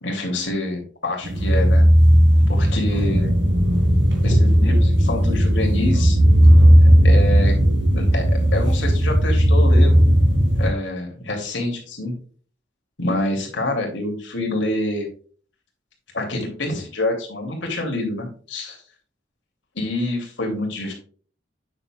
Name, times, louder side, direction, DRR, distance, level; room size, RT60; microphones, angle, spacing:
voice 1, 0.0-1.9 2.5-3.3 4.2-6.2 6.8-7.5 7.9-8.2 8.5-10.0 10.6-12.1 13.0-15.1 16.1-18.8 19.7-20.9, left 1 dB, 75° left, 0 dB, 2.7 m, -26 dB
sound 1, 1.2-10.7, equal, 80° right, 2.8 m, -15 dB
8.8 x 6.9 x 2.3 m, 0.43 s
head